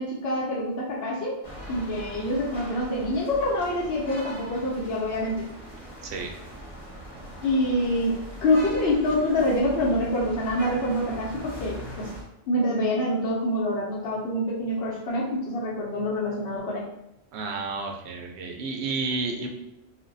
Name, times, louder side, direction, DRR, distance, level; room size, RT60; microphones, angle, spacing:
voice 1, 0.0-1.4 1.7-5.4 7.4-12.1 12.5-16.9, left 1 dB, 70° left, -6 dB, 0.9 m, -26 dB
sound 1, 1.4-12.2, equal, 35° left, 0.8 m, -41 dB
voice 2, 17.3-19.5, right 3 dB, 80° right, 2 dB, 0.8 m, -31 dB
2.5 x 2.1 x 3.8 m, 0.86 s
omnidirectional pair, 1.1 m